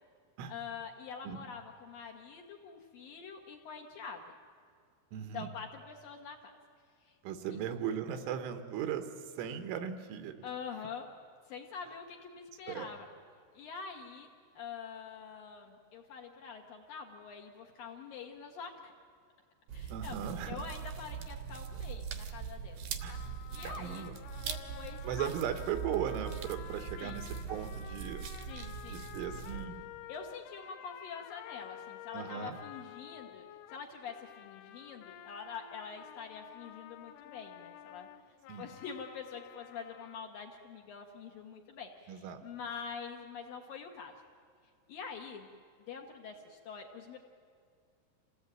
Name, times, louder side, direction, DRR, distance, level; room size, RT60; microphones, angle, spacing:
voice 1, 0.5-4.2 5.3-6.5 7.0-7.2 10.4-11.1 11.4-13.1 13.5-18.9 19.7-20.2 20.4-22.8 23.5-24.1 24.4-25.3 27.0-27.2 28.5-29.0 30.1-38.1 38.6-44.1 44.9-45.5 45.9-47.2, left 6 dB, 65° left, 2 dB, 2.5 m, -45 dB
voice 2, 5.1-5.5 7.2-10.4 12.7-12.9 19.9-20.6 23.0-23.2 23.6-24.1 25.0-28.2 28.8-29.8 32.1-32.6 38.5-38.7 42.1-42.4, right 9 dB, 90° right, 8 dB, 3.8 m, -38 dB
sound 1, 19.7-29.6, right 7 dB, 70° right, 2.0 m, -42 dB
sound 2, 23.1-40.2, left 12 dB, 90° left, 3.4 m, -51 dB
26.5 x 17.0 x 8.9 m, 2.3 s
omnidirectional pair, 5.6 m